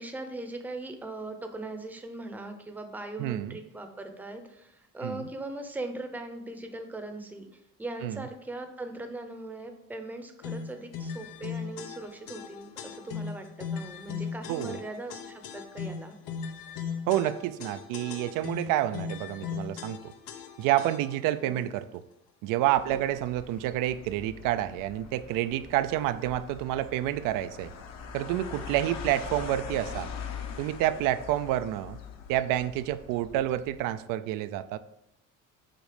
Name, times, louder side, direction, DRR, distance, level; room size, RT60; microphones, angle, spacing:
voice 1, 0.0-16.1 21.4-21.6 22.8-23.1, right 2 dB, 5° right, 6 dB, 0.7 m, -40 dB
voice 2, 3.2-3.6 5.0-5.3 8.0-8.2 14.5-14.8 17.1-20.1 20.6-22.0 22.4-27.7 28.1-30.1 30.6-32.0 32.3-34.8, right 13 dB, 85° right, 12 dB, 0.6 m, -29 dB
sound 1, 10.4-21.3, left 6 dB, 85° left, 1.0 m, -38 dB
sound 2, 22.8-33.9, left 6 dB, 55° left, 1.1 m, -42 dB
7.7 x 5.3 x 5.0 m, 0.80 s
cardioid pair, 160°, 32 cm